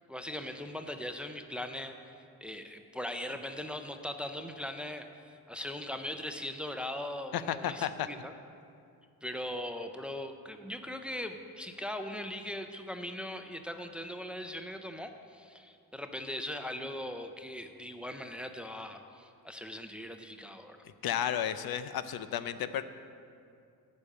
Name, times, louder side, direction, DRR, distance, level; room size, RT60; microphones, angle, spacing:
voice 1, 0.1-8.3 9.2-20.8, left 1 dB, 5° right, 6 dB, 0.5 m, -40 dB
voice 2, 7.3-8.1 21.0-22.8, left 10 dB, 70° left, 12 dB, 0.6 m, -33 dB
11.5 x 5.3 x 8.7 m, 2.4 s
cardioid pair, 115°, 38 cm